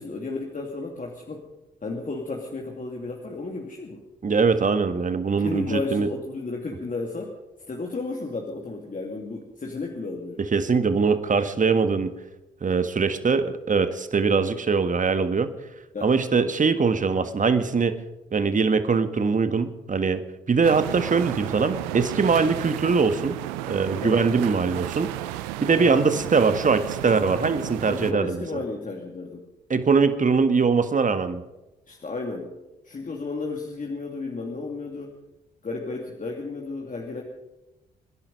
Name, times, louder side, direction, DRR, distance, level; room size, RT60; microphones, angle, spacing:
voice 1, 0.0-1.4 1.8-4.0 5.4-7.3 7.6-10.4 15.9-16.1 24.0-24.2 25.8-26.0 27.9-29.5 31.9-32.5 32.8-35.2 35.6-37.2, left 3 dB, 40° left, 0 dB, 2.6 m, -33 dB
voice 2, 4.2-6.1 10.4-12.1 12.6-15.5 16.0-18.0 18.3-23.4 23.6-25.1 25.6-28.6 29.7-31.4, right 5 dB, 35° right, 10 dB, 1.7 m, -22 dB
sound 1, 20.6-28.1, right 14 dB, 85° right, 0.7 m, -33 dB
24.5 x 11.0 x 5.4 m, 1.0 s
hypercardioid pair, 45°, 21 cm